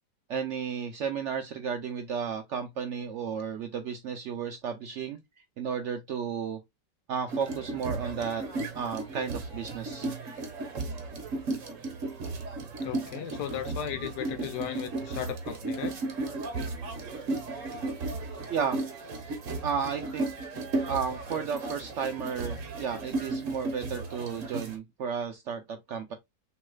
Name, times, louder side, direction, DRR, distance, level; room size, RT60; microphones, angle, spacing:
voice 1, 0.3-5.2 5.6-6.6 7.1-8.5 8.7-10.1 18.5-18.8 19.6-20.3 20.9-26.1, right 7 dB, 80° right, 0.6 m, -33 dB
sound 1, 7.3-24.8, right 2 dB, 50° right, 1.2 m, -35 dB
voice 2, 12.8-16.0 20.8-20.9, left 9 dB, 75° left, 1.1 m, -36 dB
6.2 x 3.1 x 2.2 m
omnidirectional pair, 1.9 m